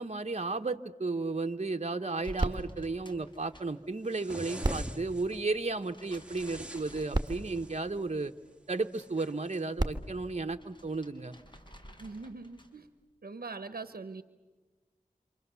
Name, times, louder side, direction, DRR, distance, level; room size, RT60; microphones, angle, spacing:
voice 1, 0.0-8.3 8.7-11.3, right 3 dB, 45° right, 6 dB, 1.0 m, -34 dB
sound 1, 2.2-4.2 4.5-8.0 8.4-9.3 9.7-12.9, equal, 30° left, 4.2 m, -54 dB
sound 2, 2.4-4.0 4.6-6.2 6.8-6.9 7.1-8.7 9.5-11.4 12.1-12.2, right 2 dB, 25° right, 1.5 m, -37 dB
sound 3, 4.1-5.4 6.0-7.9 8.9-9.6, right 1 dB, 5° right, 2.2 m, -44 dB
voice 2, 12.0-12.9 13.2-14.2, right 4 dB, 90° right, 11 dB, 0.9 m, -42 dB
28.0 x 27.0 x 6.9 m, 1.3 s
wide cardioid pair, 50°, 15 cm